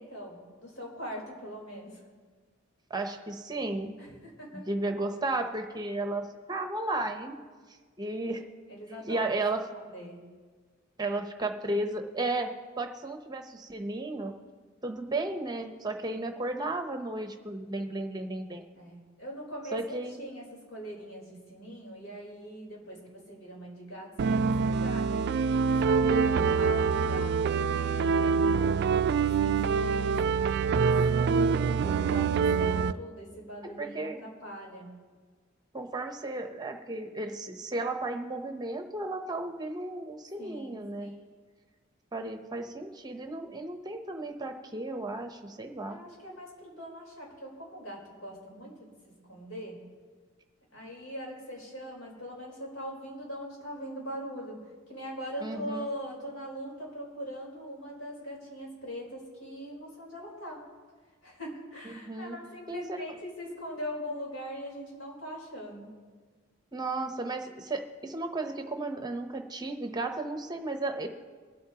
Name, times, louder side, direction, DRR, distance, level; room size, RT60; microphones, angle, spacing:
voice 1, 0.0-2.0 4.0-4.7 8.7-9.4 9.7-10.2 18.7-26.2 26.6-31.0 31.8-34.9 40.4-41.1 45.9-49.8 50.7-60.6 61.2-65.9, equal, 80° left, -3 dB, 3.9 m, -41 dB
voice 2, 2.9-3.9 4.5-7.4 8.0-8.4 9.1-9.6 11.0-12.5 12.8-14.3 14.8-18.6 19.7-20.2 26.0-26.4 31.0-32.1 33.8-34.2 35.7-41.1 42.1-46.0 55.4-55.9 61.9-62.4 62.7-63.0 66.7-71.1, right 2 dB, 20° right, 5 dB, 0.8 m, -34 dB
sound 1, 24.2-32.9, right 5 dB, 55° right, 0.3 m, -25 dB
23.5 x 8.6 x 2.9 m, 1.5 s
head